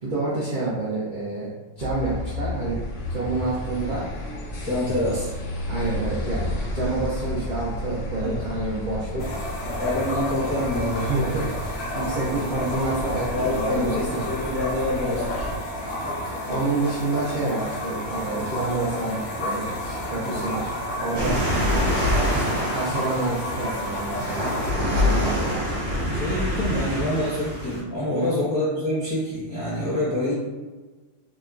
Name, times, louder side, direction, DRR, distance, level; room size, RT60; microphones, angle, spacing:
voice 1, 0.0-1.5 1.8-2.8 3.1-4.1 5.7-9.3 10.9-14.2 16.5-20.7 21.0-21.4 22.3-24.6 24.9-25.6 28.1-28.4, right 2 dB, 75° right, -6 dB, 0.4 m, -28 dB
sound 1, 1.8-15.6, left 1 dB, 60° left, 0.6 m, -32 dB
voice 2, 4.6-5.3 8.2-8.4 9.8-11.1 12.3-12.7 13.3-15.3 20.1-20.3 26.1-30.3, left 1 dB, 20° left, -10 dB, 0.6 m, -26 dB
sound 2, 9.2-24.7, left 1 dB, 90° left, 1.1 m, -31 dB
sound 3, 21.1-27.8, left 1 dB, 50° right, 0.9 m, -25 dB
2.9 x 2.2 x 2.4 m, 1.3 s
omnidirectional pair, 1.5 m